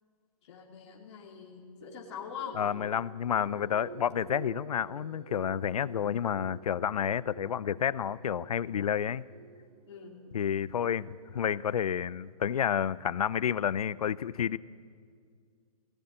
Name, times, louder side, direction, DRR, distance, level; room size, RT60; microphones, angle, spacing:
voice 1, 0.4-2.6 9.9-10.3, left 7 dB, 45° left, -1 dB, 2.7 m, -43 dB
sound 1, 1.8-11.9, right 5 dB, 50° right, 4.7 m, -51 dB
voice 2, 2.6-9.2 10.3-14.6, left 9 dB, 70° left, 20 dB, 0.6 m, -30 dB
19.5 x 17.5 x 8.9 m, 2.1 s
hypercardioid pair, 155°, 20 cm